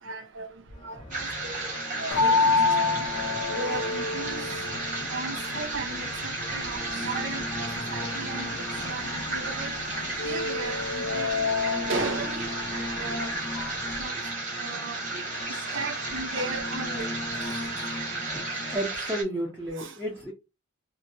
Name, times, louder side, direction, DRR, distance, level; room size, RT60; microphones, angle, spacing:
voice 1, 0.1-0.5 0.8-1.7 2.0-2.6 3.6-4.4 5.1-6.1 6.5-8.5 8.8-9.7 10.2-11.3 11.6-12.4 12.7-13.3 14.0-14.1 14.6-15.2 15.7-17.0 17.4-17.5 19.8-19.9, right 3 dB, 55° right, 0.6 m, -36 dB
sound 1, 0.7-18.8, left 2 dB, 20° left, 0.4 m, -39 dB
voice 2, 1.0-1.3 10.0-10.2 14.0-14.2 18.3-20.3, right 1 dB, 10° right, 0.7 m, -33 dB
sound 2, 1.1-19.2, right 3 dB, 35° right, 1.1 m, -34 dB
sound 3, 2.1-14.0, left 4 dB, 80° left, 0.4 m, -30 dB
2.8 x 2.7 x 2.6 m
head